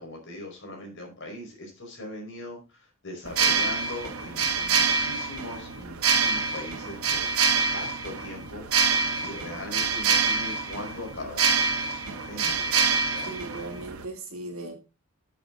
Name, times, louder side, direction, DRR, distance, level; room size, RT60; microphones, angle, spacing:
voice 1, 0.0-7.3 7.7-11.5 11.9-13.5, left 1 dB, 60° left, 2 dB, 4.9 m, -40 dB
sound 1, 3.2-14.0, right 5 dB, 90° right, 1.2 m, -26 dB
voice 2, 13.2-14.7, right 2 dB, 70° right, 2 dB, 3.1 m, -37 dB
9.0 x 8.4 x 3.9 m, 0.29 s
head